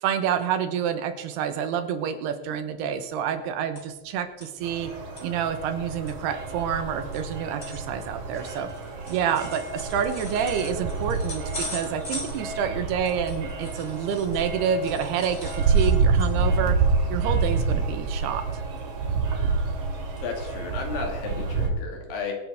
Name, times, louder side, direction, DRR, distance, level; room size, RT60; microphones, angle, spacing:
voice 1, 0.0-4.9 5.2-8.7 9.1-16.8 17.1-18.6, right 8 dB, 80° right, 8 dB, 3.0 m, -28 dB
sound 1, 3.4-4.1 4.4-4.5 4.9-5.2 5.7-5.8 6.1-14.5 14.8-16.6 17.0-17.2 17.5-17.7 18.8-19.3 19.7-20.2 20.5-20.6 21.2-21.3, left 1 dB, 15° left, 2.0 m, -41 dB
sound 2, 4.6-21.7, right 4 dB, 55° right, 3.2 m, -28 dB
voice 2, 20.2-22.3, left 4 dB, 75° left, 1 dB, 4.2 m, -33 dB
24.0 x 8.7 x 3.5 m, 1.1 s
omnidirectional pair, 4.7 m